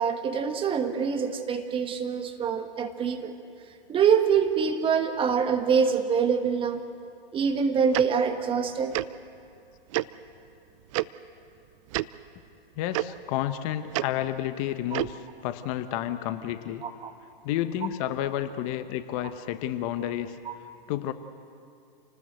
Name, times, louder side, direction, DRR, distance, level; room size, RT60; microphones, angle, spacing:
voice 1, 0.0-3.3 3.9-6.8 7.3-8.9 16.8-17.1 20.4-20.6, right 6 dB, 20° right, 6 dB, 1.3 m, -25 dB
Tick-tock, 7.9-8.1 8.9-9.1 9.9-10.1 10.9-11.1 11.9-12.1 12.9-13.0 13.9-14.1 14.9-15.1, right 19 dB, 35° right, 0.5 m, -27 dB
voice 2, 12.8-15.2 15.4-16.8 17.4-20.3 20.9-21.1, left 12 dB, 35° left, 10 dB, 1.1 m, -30 dB
28.0 x 19.5 x 8.0 m, 2.4 s
hypercardioid pair, 125°, 29 cm